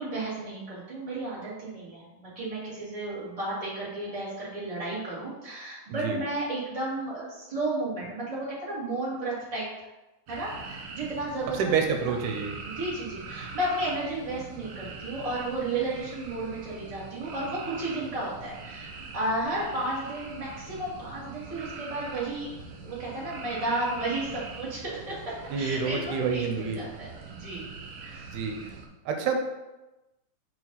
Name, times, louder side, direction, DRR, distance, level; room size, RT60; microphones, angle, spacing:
voice 1, 0.0-9.9 10.3-12.1 12.6-22.5 22.8-27.7 28.0-28.3, right 2 dB, 15° right, -8 dB, 1.9 m, -33 dB
sound 1, 10.3-28.9, right 4 dB, 70° right, 1.5 m, -43 dB
voice 2, 11.6-12.6 25.5-26.8 28.3-28.7 29.1-29.4, right 5 dB, 85° right, 3 dB, 2.3 m, -28 dB
4.8 x 4.8 x 5.6 m, 1.0 s
omnidirectional pair, 3.6 m